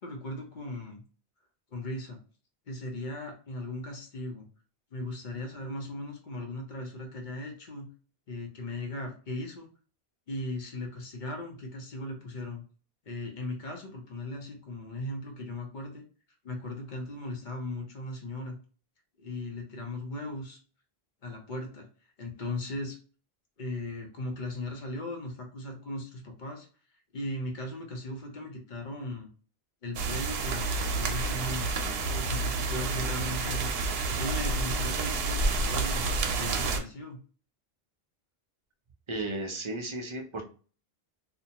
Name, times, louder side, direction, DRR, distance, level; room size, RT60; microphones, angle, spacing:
voice 1, 0.0-1.0 1.7-2.2 2.7-4.5 4.9-7.9 8.3-9.7 10.3-12.6 13.1-16.0 16.4-18.6 19.2-20.6 21.2-21.9 22.2-23.0 23.6-26.7 27.1-29.3 29.8-31.8 32.1-36.0 36.4-37.2, left 1 dB, 55° left, 2 dB, 0.8 m, -38 dB
sound 1, 29.9-36.8, right 3 dB, 70° right, 0.8 m, -29 dB
voice 2, 39.1-40.4, right 2 dB, 40° right, 2 dB, 0.5 m, -34 dB
2.5 x 2.1 x 2.8 m, 0.39 s
omnidirectional pair, 1.1 m